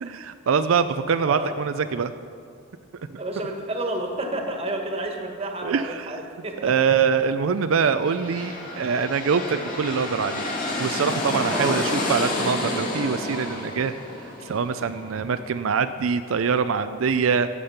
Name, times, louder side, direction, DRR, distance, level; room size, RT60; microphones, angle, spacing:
voice 1, 0.0-2.1 3.1-3.2 5.6-6.2 6.6-10.5 10.8-13.9 14.4-17.5, right 6 dB, 90° right, 10 dB, 0.4 m, -24 dB
voice 2, 1.2-1.6 3.2-6.7 7.2-7.3 11.5-11.8, right 1 dB, 30° right, 2 dB, 1.4 m, -30 dB
sound 1, 7.9-15.6, left 2 dB, 40° left, 2.5 m, -30 dB
14.0 x 8.4 x 5.7 m, 2.3 s
head